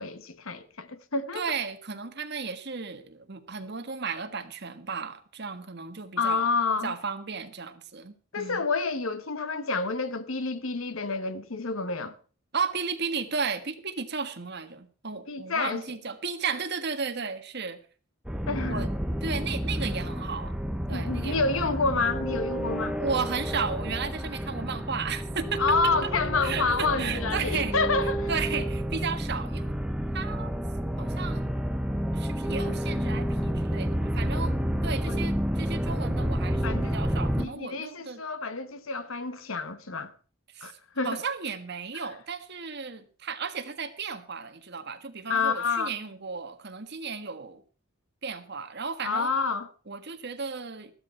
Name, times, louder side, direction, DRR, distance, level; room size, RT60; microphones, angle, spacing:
voice 1, 0.0-1.4 6.2-6.9 8.3-12.1 15.3-15.8 18.5-18.9 20.9-23.0 25.6-28.6 35.0-35.2 36.6-37.0 37.4-40.1 40.6-41.2 41.9-42.1 45.3-45.9 49.0-49.7, left 4 dB, 80° left, 1.2 m, -29 dB
voice 2, 1.3-6.5 6.8-8.7 12.5-17.8 18.7-18.9 19.2-20.5 20.9-21.7 23.0-25.9 26.4-27.7 28.3-29.7 30.1-30.5 31.0-31.5 32.1-34.6 34.8-38.2 40.5-40.7 41.0-47.6 48.2-49.3 49.9-50.9, right 5 dB, 55° right, 1.5 m, -34 dB
sound 1, 18.2-37.5, equal, 5° right, 0.8 m, -30 dB
14.0 x 12.5 x 4.5 m
head